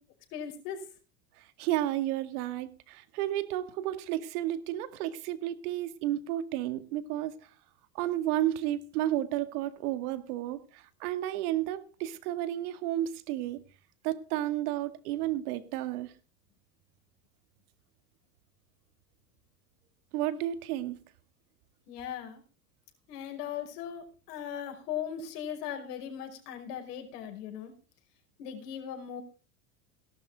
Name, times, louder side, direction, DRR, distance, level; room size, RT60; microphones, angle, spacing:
voice 1, 0.3-0.8 21.9-22.4 23.1-27.7 28.4-29.2, left 9 dB, 70° left, 4 dB, 5.5 m, -38 dB
voice 2, 1.4-7.3 7.9-13.6 14.0-16.1 20.1-21.0, right 13 dB, 65° right, 12 dB, 2.1 m, -32 dB
17.5 x 12.0 x 3.6 m, 0.36 s
hypercardioid pair, 105°, 48 cm